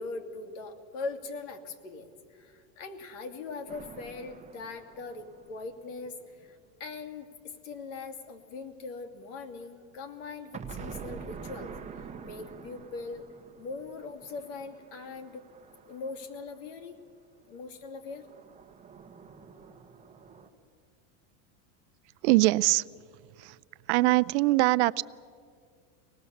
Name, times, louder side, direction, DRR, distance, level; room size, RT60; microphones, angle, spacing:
voice 1, 0.0-13.2 13.6-15.4 15.9-17.0 17.5-18.3, left 4 dB, 70° left, 6 dB, 2.7 m, -41 dB
sound 1, 3.7-6.5 10.5-16.8 18.1-20.5, right 6 dB, 15° right, 1.2 m, -47 dB
voice 2, 22.2-22.8 23.4-23.6 23.9-25.0, right 21 dB, 60° right, 18 dB, 0.5 m, -23 dB
25.5 x 19.0 x 7.1 m, 2.2 s
supercardioid pair, 140°, 38 cm